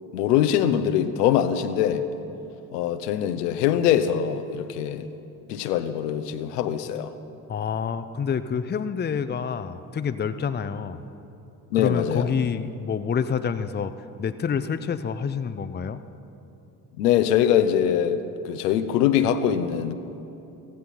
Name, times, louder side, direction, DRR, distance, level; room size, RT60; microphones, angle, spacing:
voice 1, 0.1-2.0 2.7-5.1 5.5-7.1 11.7-12.3 17.0-19.9, left 10 dB, 70° left, 1.0 m, -23 dB
voice 2, 7.5-11.0 11.7-13.9 14.2-16.0, left 6 dB, 20° left, 0.7 m, -27 dB
16.0 x 15.5 x 5.8 m
figure-of-eight pair, 55°, 49 cm